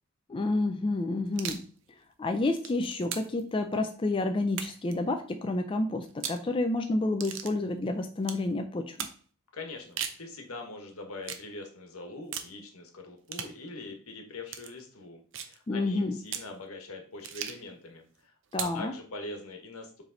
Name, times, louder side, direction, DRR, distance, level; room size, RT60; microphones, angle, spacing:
voice 1, 0.3-1.6 2.2-9.1 15.7-16.2 18.5-18.9, left 2 dB, 25° left, 5 dB, 0.3 m, -29 dB
sound 1, 1.3-1.7 2.3-3.4 4.5-4.9 6.1-6.4 7.2-7.5 8.2-8.4 9.0-9.2 9.8-10.2 11.2-11.5 12.3-12.5 13.3-13.6 14.5-14.7 15.3-15.6 16.3-16.5 17.2-17.7 18.5-18.8, right 8 dB, 55° right, 0.7 m, -37 dB
voice 2, 9.5-18.3 18.6-20.0, left 2 dB, 80° left, 4 dB, 1.3 m, -43 dB
7.2 x 3.4 x 3.9 m, 0.43 s
head